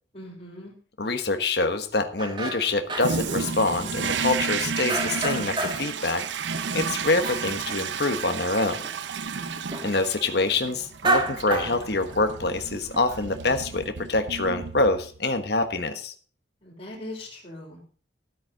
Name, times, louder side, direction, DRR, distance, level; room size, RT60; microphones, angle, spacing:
voice 1, 0.1-0.7 9.3-9.7 16.6-17.8, left 1 dB, 35° left, -8 dB, 3.9 m, -40 dB
voice 2, 1.0-6.2 6.7-8.8 9.8-16.1, left 3 dB, 60° left, 7 dB, 1.3 m, -25 dB
sound 1, 2.2-3.3 3.8-4.5 4.9-6.0 6.2-8.1 8.5-8.6 8.8-9.0 9.7-10.0 10.8-12.4 12.9-13.4, right 2 dB, 25° right, 1.8 m, -30 dB
Toilet flush, 3.0-15.3, right 5 dB, 75° right, 0.7 m, -32 dB
13.0 x 8.4 x 5.2 m, 0.42 s
head